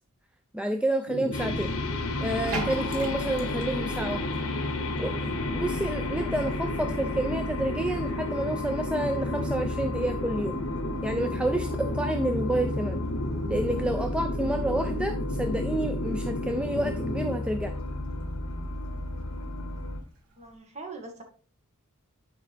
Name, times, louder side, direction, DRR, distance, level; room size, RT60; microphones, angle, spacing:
voice 1, 0.5-1.7 2.2-4.3 5.0-10.6 11.0-13.0 13.5-17.7, right 1 dB, 5° right, 5 dB, 0.4 m, -29 dB
sound 1, 1.1-17.4, left 1 dB, 60° left, 1.0 m, -33 dB
sound 2, 1.3-20.0, left 2 dB, 75° left, 1.4 m, -34 dB
Bathtub (filling or washing), 2.2-20.5, right 3 dB, 70° right, 1.6 m, -47 dB
voice 2, 20.4-21.2, right 3 dB, 30° right, 3 dB, 1.5 m, -41 dB
9.8 x 4.8 x 3.4 m, 0.41 s
head